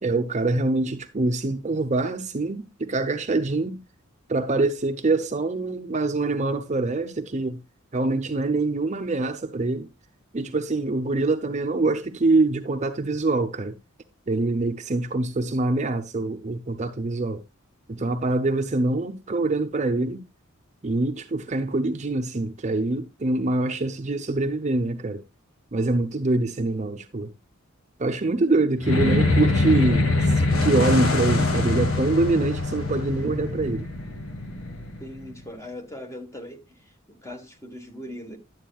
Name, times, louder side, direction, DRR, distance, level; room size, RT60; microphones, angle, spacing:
voice 1, 0.0-3.8 4.3-7.6 7.9-9.9 10.3-13.7 14.3-17.4 17.9-20.3 20.8-25.2 25.7-27.3 28.0-30.1 30.6-33.9, right 2 dB, 35° right, 0.7 m, -24 dB
sound 1, 28.8-35.4, left 2 dB, 75° left, 1.5 m, -23 dB
voice 2, 35.0-36.6 37.1-38.4, left 1 dB, 15° left, 1.4 m, -39 dB
11.0 x 7.9 x 2.3 m
head